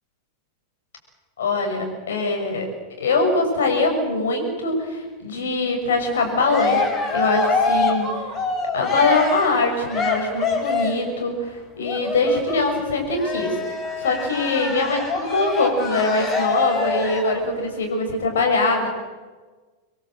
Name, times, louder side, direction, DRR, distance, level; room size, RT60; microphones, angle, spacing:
voice 1, 1.4-2.7 3.0-6.9 7.1-8.1 8.7-18.9, left 3 dB, 65° left, 3 dB, 6.6 m, -22 dB
Cheering, 6.1-11.1 11.8-17.4, left 4 dB, 25° left, 5.0 m, -25 dB
26.5 x 21.5 x 7.7 m, 1.4 s
figure-of-eight pair, 90°, 0 cm